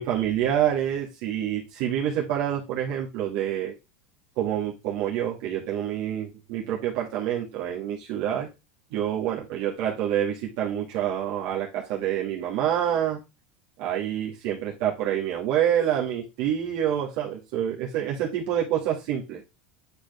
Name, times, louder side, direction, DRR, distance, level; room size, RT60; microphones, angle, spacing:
voice 1, 0.0-3.7 4.4-8.5 8.9-13.2 13.8-19.4, right 10 dB, 65° right, -4 dB, 2.1 m, -27 dB
9.5 x 4.4 x 3.5 m, 0.26 s
supercardioid pair, 130°, 6 cm